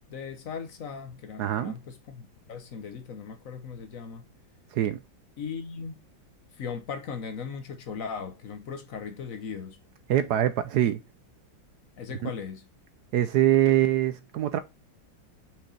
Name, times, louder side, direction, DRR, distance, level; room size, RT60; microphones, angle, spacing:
voice 1, 0.1-4.2 5.4-6.0 6.6-9.8 12.0-12.7, left 6 dB, 55° left, 1.1 m, -38 dB
voice 2, 1.4-1.8 4.7-5.0 10.1-11.0 12.2-12.3 13.1-14.6, right 12 dB, 70° right, 1.0 m, -23 dB
5.8 x 5.2 x 4.1 m
omnidirectional pair, 2.1 m